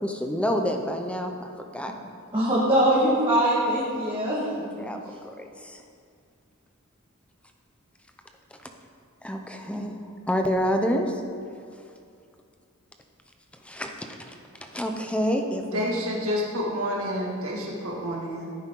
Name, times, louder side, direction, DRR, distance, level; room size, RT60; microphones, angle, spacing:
voice 1, 0.0-1.9 4.8-5.8 8.6-8.7 9.2-9.9 10.3-11.2 13.6-14.3 14.7-15.9, equal, 5° left, 3 dB, 0.8 m, -28 dB
voice 2, 2.3-4.9, right 1 dB, 25° right, -7 dB, 1.9 m, -23 dB
voice 3, 15.7-18.5, equal, 80° right, -3 dB, 2.3 m, -29 dB
15.0 x 8.7 x 3.9 m, 2.3 s
head